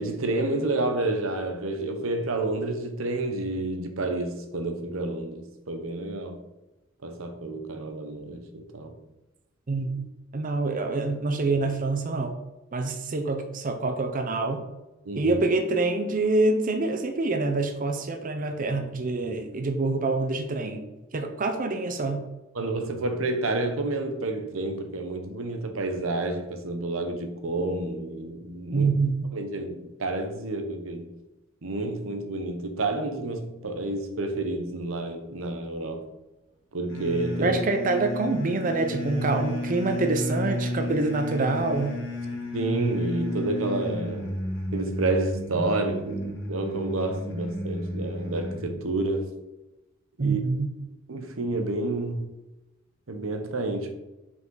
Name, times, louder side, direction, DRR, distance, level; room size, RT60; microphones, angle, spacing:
voice 1, 0.0-6.4 7.0-8.9 15.0-15.4 22.5-28.9 29.3-31.1 31.6-36.1 36.7-37.6 42.5-44.3 44.7-49.3 50.2-50.5 51.1-52.2 53.1-53.9, right 2 dB, 85° right, 0.9 m, -29 dB
voice 2, 9.7-10.0 10.3-12.4 12.7-14.6 15.2-20.9 21.1-22.2 28.7-29.2 37.4-41.9 50.2-50.7, right 3 dB, 40° right, 0.6 m, -26 dB
sound 1, 36.9-48.8, left 1 dB, 65° left, 1.8 m, -32 dB
5.4 x 5.4 x 3.8 m
head